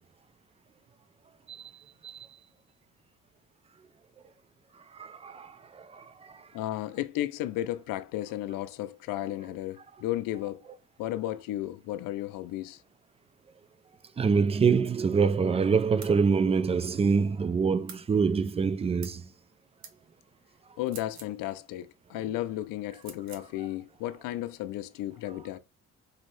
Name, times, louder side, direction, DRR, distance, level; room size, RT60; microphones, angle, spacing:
voice 1, 5.0-5.5 5.9-6.0 14.2-19.2, right 5 dB, 20° right, 0.4 m, -25 dB
voice 2, 6.5-10.6 11.0-12.8 20.8-25.6, left 14 dB, 85° left, 0.5 m, -34 dB
sound 1, 16.0-16.2 17.9-18.1 19.0-19.2 19.8-20.0 20.8-21.4 23.0-23.5, right 6 dB, 60° right, 0.9 m, -46 dB
4.1 x 2.6 x 3.2 m
cardioid pair, 95°, 32 cm